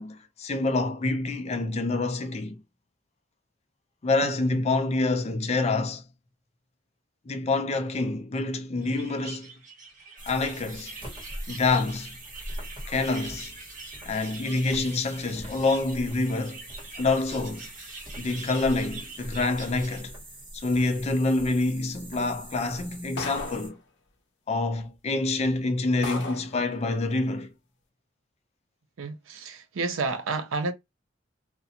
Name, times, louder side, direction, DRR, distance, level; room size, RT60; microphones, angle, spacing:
voice 1, 0.0-2.6 4.0-6.0 7.3-9.5 10.3-11.0 11.5-12.2 12.9-13.5 14.1-16.6 17.0-17.7 18.2-20.1 20.5-23.8 24.5-27.5, left 3 dB, 35° left, 0.4 m, -27 dB
sound 1, 8.8-20.0, right 3 dB, 45° right, 1.3 m, -44 dB
sound 2, 10.2-23.7, equal, 25° right, 1.2 m, -42 dB
sound 3, 23.2-23.7 24.8-24.9 25.4-25.5 26.0-26.6, left 2 dB, 65° left, 0.7 m, -35 dB
voice 2, 29.0-30.7, right 3 dB, 90° right, 0.5 m, -30 dB
2.5 x 2.1 x 2.7 m
head